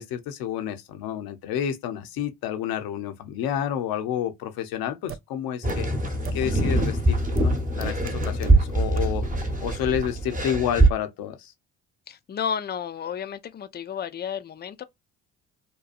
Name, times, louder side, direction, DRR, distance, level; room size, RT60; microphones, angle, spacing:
voice 1, 0.0-5.9 6.3-9.2 9.6-11.5, left 9 dB, 70° left, 0.8 m, -30 dB
sound 1, 5.1-5.2 5.7-5.8 6.2-6.3 7.4-7.5 7.8-8.5 9.0-9.1, right 9 dB, 40° right, 0.4 m, -35 dB
sound 2, 5.6-10.9, right 2 dB, 20° right, 1.0 m, -23 dB
voice 2, 12.1-14.8, left 8 dB, 25° left, 0.5 m, -32 dB
2.7 x 2.2 x 2.5 m
hypercardioid pair, 55°, 37 cm